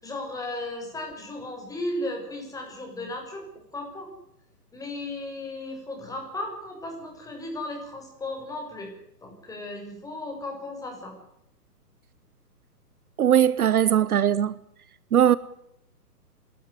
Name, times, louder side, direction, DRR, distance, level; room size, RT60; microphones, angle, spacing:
voice 1, 0.0-3.4 3.7-4.1 4.7-8.9 9.2-11.1, left 2 dB, 5° left, 6.7 m, -35 dB
voice 2, 13.2-14.6 15.1-15.4, right 9 dB, 65° right, 1.0 m, -20 dB
28.0 x 13.5 x 9.7 m
hypercardioid pair, 140°, 48 cm